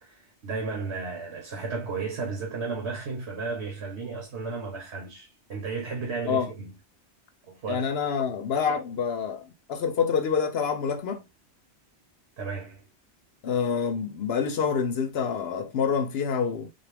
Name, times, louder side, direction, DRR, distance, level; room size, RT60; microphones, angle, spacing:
voice 1, 0.0-6.8 7.5-7.8 12.4-12.9, right 4 dB, 70° right, 1.3 m, -34 dB
voice 2, 7.7-11.2 13.4-16.7, left 6 dB, 65° left, 0.8 m, -27 dB
3.9 x 2.4 x 3.3 m
omnidirectional pair, 1.2 m